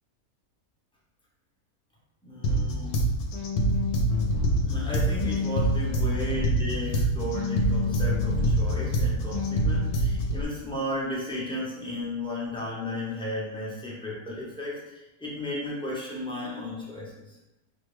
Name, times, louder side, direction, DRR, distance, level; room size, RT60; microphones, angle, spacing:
voice 1, 2.2-2.9 4.6-17.2, left 1 dB, 5° left, -6 dB, 0.5 m, -34 dB
sound 1, 2.4-10.4, equal, 85° left, 1.1 m, -25 dB
4.7 x 2.2 x 3.1 m, 0.98 s
omnidirectional pair, 1.6 m